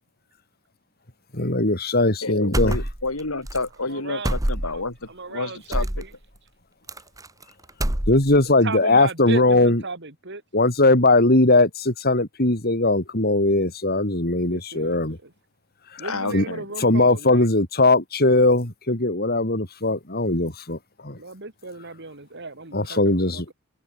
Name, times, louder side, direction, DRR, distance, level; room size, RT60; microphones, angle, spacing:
voice 1, 1.3-2.8 8.1-9.8 10.5-15.2 16.3-16.4 16.8-20.8 21.0-21.2 22.7-23.4, left 2 dB, 45° left, 4.8 m, -19 dB
voice 2, 2.2-6.0 16.0-16.7, left 3 dB, 90° left, 4.8 m, -30 dB
sound 1, 2.5-3.2 3.5-3.6 4.2-4.9 5.7-6.1 6.9-7.4 7.7-8.4, right 1 dB, 15° right, 1.5 m, -25 dB
voice 3, 3.9-4.3 5.1-6.1 8.6-10.4 14.4-15.3 16.0-17.5 21.2-23.5, right 3 dB, 55° right, 3.6 m, -35 dB
head